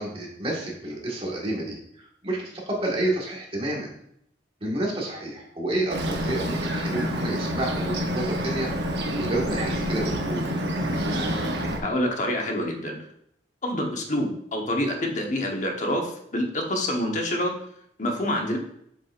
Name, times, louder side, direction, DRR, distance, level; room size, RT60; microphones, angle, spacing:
voice 1, 0.0-3.9 4.6-8.7 9.1-10.5, right 1 dB, 30° right, -3 dB, 1.6 m, -29 dB
Bird, 5.9-11.8, equal, 60° right, 1.0 m, -28 dB
voice 2, 11.8-13.0 13.6-17.5 18.0-18.6, left 1 dB, 40° left, 2 dB, 1.1 m, -27 dB
7.2 x 6.0 x 2.5 m, 0.72 s
head